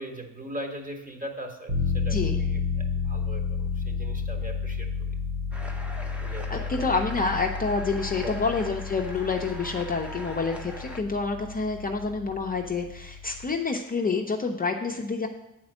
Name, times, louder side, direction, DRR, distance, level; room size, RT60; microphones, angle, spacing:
voice 1, 0.0-5.1 6.2-6.9 8.1-8.5, right 1 dB, 25° right, 3 dB, 1.4 m, -40 dB
sound 1, 1.7-13.5, left 5 dB, 85° right, 1.6 m, -32 dB
voice 2, 2.1-2.4 6.5-15.3, left 4 dB, 25° left, 1 dB, 0.6 m, -28 dB
sound 2, 5.5-11.0, equal, 5° right, 0.8 m, -42 dB
8.5 x 4.4 x 6.1 m, 0.96 s
cardioid pair, 100°, 34 cm